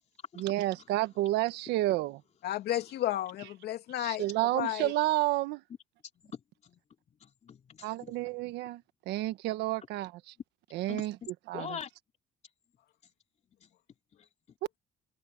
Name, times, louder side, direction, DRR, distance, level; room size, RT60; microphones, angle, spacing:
voice 1, 0.4-2.2 4.0-5.6 7.8-10.3 10.7-11.2 11.5-11.7, right 16 dB, 90° right, 1.3 m, -30 dB
voice 2, 2.4-4.3 4.5-4.9, left 13 dB, 75° left, 2.7 m, -32 dB
voice 3, 6.2-6.8 7.2-8.2 10.9-11.1 11.5-11.9 13.6-13.7, left 7 dB, 40° left, 3.2 m, -43 dB
cardioid pair, 110°, 17 cm